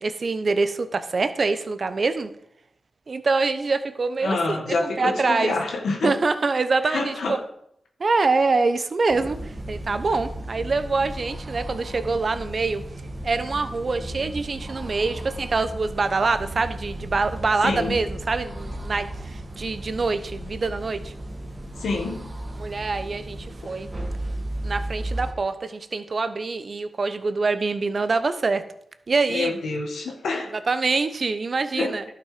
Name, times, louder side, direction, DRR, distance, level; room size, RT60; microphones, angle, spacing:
voice 1, 0.0-2.3 3.1-4.6 4.8-5.5 6.0-7.4 8.0-12.8 13.2-21.1 22.6-23.9 24.6-28.6 29.1-29.5 30.7-32.0, right 3 dB, 55° right, 11 dB, 1.0 m, -25 dB
voice 2, 4.2-6.2 6.8-7.4 17.6-18.0 21.8-22.2 23.6-23.7 29.3-30.5 31.8-32.0, left 3 dB, 80° left, 2 dB, 1.7 m, -27 dB
sound 1, 9.1-25.3, right 1 dB, 35° right, 1.9 m, -35 dB
11.5 x 6.0 x 5.1 m, 0.73 s
supercardioid pair, 45°, 0 cm